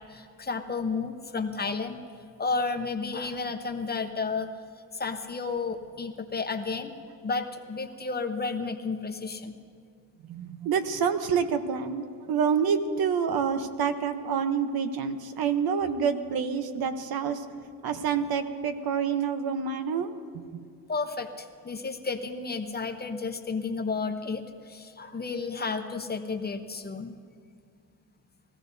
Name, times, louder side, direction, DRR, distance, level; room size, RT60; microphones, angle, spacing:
voice 1, 0.1-2.0 2.4-4.5 4.9-6.9 7.2-9.5 20.9-27.1, left 4 dB, 25° left, 6 dB, 0.8 m, -32 dB
voice 2, 10.3-17.4 17.8-20.6, right 6 dB, 75° right, 8 dB, 0.9 m, -28 dB
21.0 x 15.5 x 2.7 m, 2.3 s
cardioid pair, 125°, 37 cm